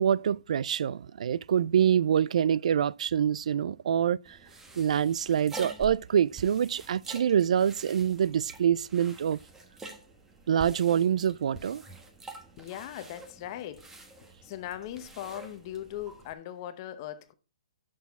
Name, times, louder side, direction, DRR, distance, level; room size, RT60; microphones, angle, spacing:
voice 1, 0.0-4.4 4.8-9.4 10.5-11.8, right 9 dB, 65° right, 0.3 m, -26 dB
sound 1, 4.3-16.3, right 3 dB, 10° right, 1.2 m, -47 dB
voice 2, 12.6-13.9 14.4-17.3, left 11 dB, 35° left, 0.8 m, -39 dB
11.0 x 6.3 x 3.5 m
hypercardioid pair, 150°, 4 cm